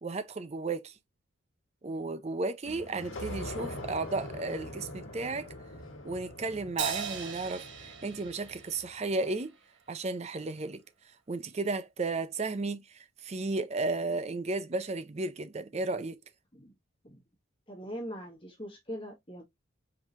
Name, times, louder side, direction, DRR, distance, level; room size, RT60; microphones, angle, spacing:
voice 1, 0.0-0.9 1.8-5.5 6.0-9.5 9.9-10.8 11.3-16.2, right 3 dB, 30° right, 0.5 m, -34 dB
sound 1, 2.7-9.0, left 1 dB, 70° left, 1.3 m, -43 dB
Crash cymbal, 6.8-9.5, right 6 dB, 60° right, 1.2 m, -38 dB
voice 2, 17.7-19.4, equal, 25° left, 1.5 m, -41 dB
4.8 x 3.7 x 2.5 m
head